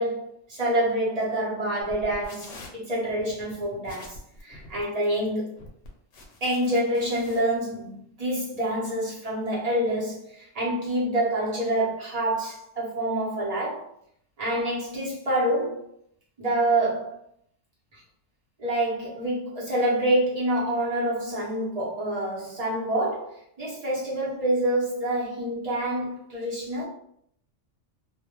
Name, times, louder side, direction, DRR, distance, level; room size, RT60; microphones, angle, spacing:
voice 1, 0.0-5.5 6.4-13.9 14.4-15.8 16.4-17.2 17.9-18.0 18.6-26.9, right 1 dB, 35° right, -6 dB, 0.7 m, -27 dB
sound 1, 1.8-7.4, left 2 dB, 70° left, 0.8 m, -46 dB
2.3 x 2.1 x 2.8 m, 0.69 s
omnidirectional pair, 1.4 m